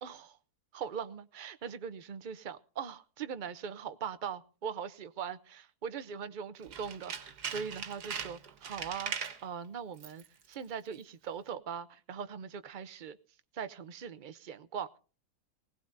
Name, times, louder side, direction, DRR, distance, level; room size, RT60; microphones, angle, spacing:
voice 1, 0.0-0.4 0.7-13.2 13.5-15.0, right 7 dB, 45° right, 0.7 m, -41 dB
Tools, 6.6-9.4 9.9-10.3 10.5-10.6, right 7 dB, 80° right, 1.8 m, -40 dB
20.0 x 17.5 x 2.6 m
omnidirectional pair, 1.7 m